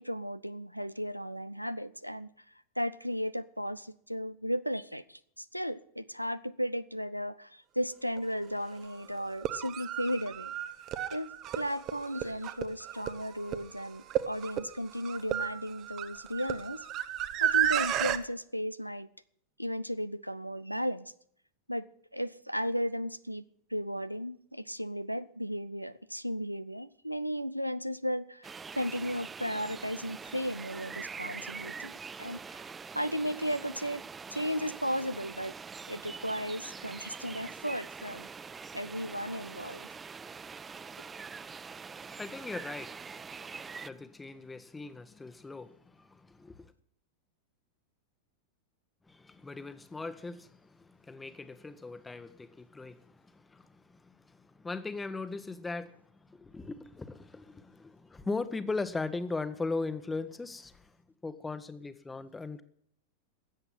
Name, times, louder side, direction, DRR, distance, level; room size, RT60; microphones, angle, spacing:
voice 1, 0.0-2.3 2.8-10.5 11.1-11.3 11.6-16.8 17.4-19.1 19.6-21.1 21.7-21.9 22.1-23.4 23.7-31.9 32.2-32.7 32.9-34.1 34.3-35.5 35.9-38.3 38.7-39.9, equal, 90° right, 15 dB, 0.5 m, -35 dB
sound 1, 8.2-8.3 9.3-18.2, right 11 dB, 35° right, 0.9 m, -33 dB
sound 2, 28.4-43.9, right 5 dB, 15° right, 0.4 m, -44 dB
voice 2, 41.9-46.7 49.1-61.0 61.2-62.6, left 3 dB, 10° left, 12 dB, 1.0 m, -39 dB
13.5 x 8.2 x 7.4 m, 0.66 s
figure-of-eight pair, 90°, 0 cm